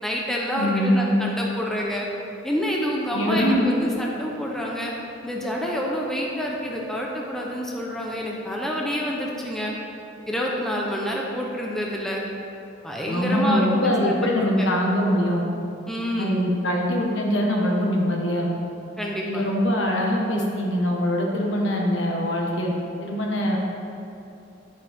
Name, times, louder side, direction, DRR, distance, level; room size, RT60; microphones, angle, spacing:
voice 1, 0.0-2.1 2.4-4.9 5.2-9.7 10.3-12.2 12.8-14.7 15.9-16.4 19.0-19.4, equal, ahead, -3 dB, 0.9 m, -28 dB
voice 2, 0.5-1.0 3.1-3.7 13.1-15.4 16.2-18.5 19.2-22.7 23.0-23.6, equal, 65° left, -1 dB, 1.5 m, -23 dB
10.5 x 9.5 x 3.6 m, 2.8 s
head